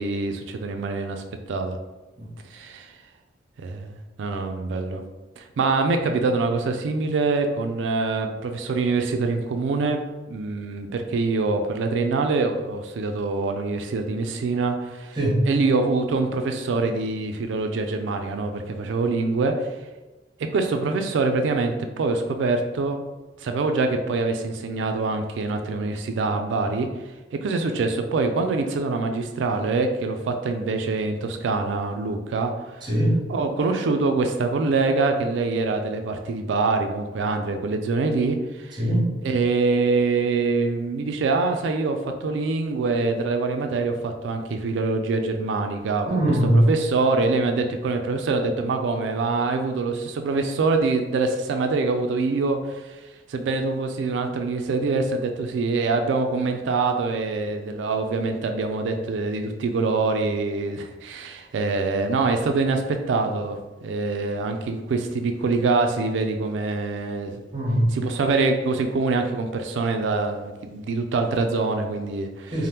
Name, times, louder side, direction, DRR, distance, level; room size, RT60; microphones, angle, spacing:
voice 1, 0.0-1.8 2.5-2.9 3.6-5.0 5.4-10.0 10.3-15.2 15.4-19.8 20.4-23.0 23.4-26.9 27.3-32.9 33.3-38.8 39.2-46.2 46.5-53.0 53.3-67.4 67.9-72.5, right 3 dB, 70° right, 5 dB, 0.3 m, -25 dB
voice 2, 15.2-15.5 32.8-33.2 38.8-39.1 46.1-46.7 67.5-68.0 72.5-72.7, equal, 25° right, -4 dB, 0.8 m, -21 dB
2.8 x 2.0 x 3.3 m, 1.1 s
head